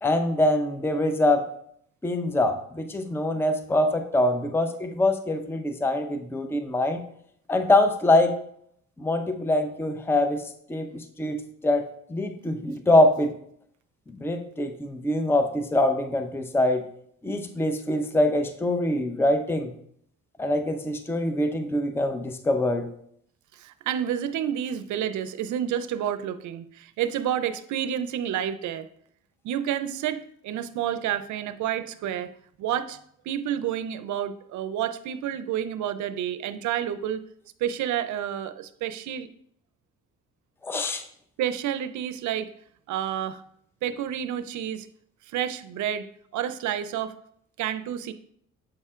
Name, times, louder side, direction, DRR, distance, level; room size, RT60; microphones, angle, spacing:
voice 1, 0.0-1.4 2.0-7.0 7.5-8.4 9.0-11.4 11.6-11.8 12.1-13.3 14.1-16.9 17.2-19.7 20.4-22.9 40.6-41.0, left 1 dB, 10° left, 6 dB, 0.5 m, -24 dB
voice 2, 23.5-28.9 29.4-32.3 32.6-33.0 33.3-37.2 37.6-39.3 41.4-42.5 42.9-43.4 43.8-44.9 45.3-46.1 46.3-47.1 47.6-48.1, right 10 dB, 75° right, 12 dB, 0.5 m, -29 dB
7.6 x 5.4 x 2.4 m, 0.68 s
cardioid pair, 90°, 30 cm